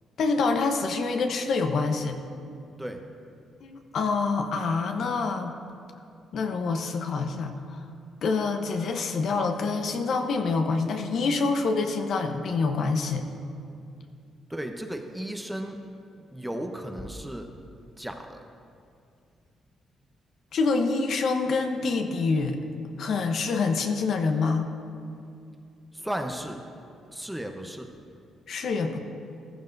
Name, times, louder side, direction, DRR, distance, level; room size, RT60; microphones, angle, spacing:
voice 1, 0.2-2.2 3.6-5.5 6.3-7.8 8.2-13.2 20.5-22.6 23.0-24.7 28.5-29.0, left 4 dB, 65° left, 5 dB, 0.9 m, -26 dB
voice 2, 14.5-15.8 16.2-17.5 18.0-18.4 25.9-26.6 27.1-27.9, right 1 dB, 5° right, 4 dB, 0.9 m, -35 dB
15.0 x 12.5 x 2.7 m, 2.4 s
cardioid pair, 90°, 0 cm